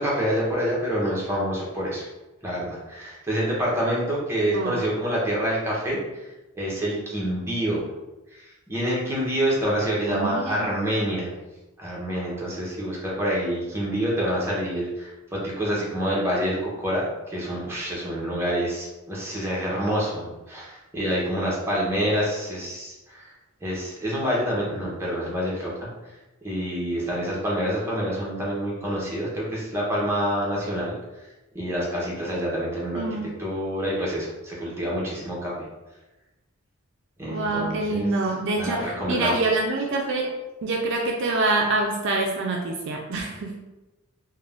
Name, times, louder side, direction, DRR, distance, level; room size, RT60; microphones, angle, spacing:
voice 1, 0.0-2.0 2.4-6.3 6.6-7.9 8.3-11.3 11.8-23.3 23.6-25.9 26.4-30.9 31.5-33.0 33.4-35.5 37.2-38.1 38.6-39.4, equal, 10° right, -6 dB, 0.7 m, -27 dB
voice 2, 10.1-10.7 32.9-33.3 37.2-40.3 40.6-43.6, right 2 dB, 55° right, 1 dB, 0.3 m, -26 dB
2.5 x 2.1 x 3.3 m, 1.1 s
head